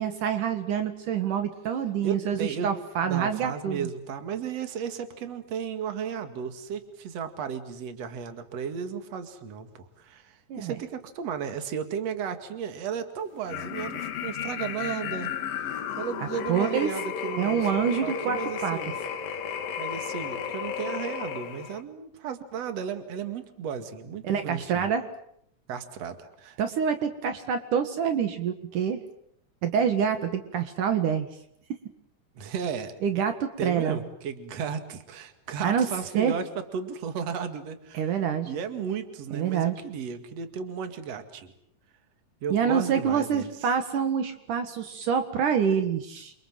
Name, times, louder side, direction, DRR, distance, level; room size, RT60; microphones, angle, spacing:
voice 1, 0.0-3.9 10.5-10.7 16.5-16.9 17.4-18.4 18.6-18.8 24.2-25.1 26.6-29.0 29.6-31.3 33.0-34.0 35.6-35.9 36.1-36.4 37.9-38.5 39.3-39.8 42.5-46.3, right 7 dB, 70° right, 8 dB, 3.2 m, -26 dB
voice 2, 2.0-2.7 3.0-15.4 16.0-17.7 18.0-19.0 19.8-24.9 25.7-26.6 32.4-32.9 33.6-38.2 38.4-41.5 42.4-43.5, right 7 dB, 50° right, 8 dB, 3.1 m, -34 dB
sound 1, 13.5-21.8, left 7 dB, 90° left, 3.3 m, -33 dB
28.5 x 26.0 x 7.6 m, 0.70 s
omnidirectional pair, 3.8 m